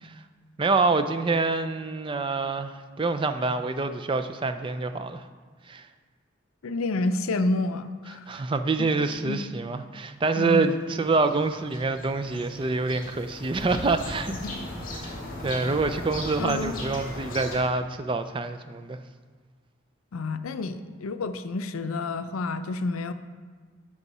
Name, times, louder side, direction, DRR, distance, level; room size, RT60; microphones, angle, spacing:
voice 1, 0.6-5.2 5.7-5.9 8.3-14.3 15.0-15.1 15.4-19.0, right 3 dB, 25° right, 10 dB, 0.3 m, -26 dB
voice 2, 6.6-8.4 8.8-8.9 9.2-9.4 10.4-10.6 14.4-14.5 16.4-16.8 20.1-23.1, left 2 dB, 90° left, 10 dB, 0.5 m, -29 dB
sound 1, 10.6-17.6, left 1 dB, 40° left, 1.8 m, -37 dB
12.5 x 4.8 x 4.1 m, 1.5 s
head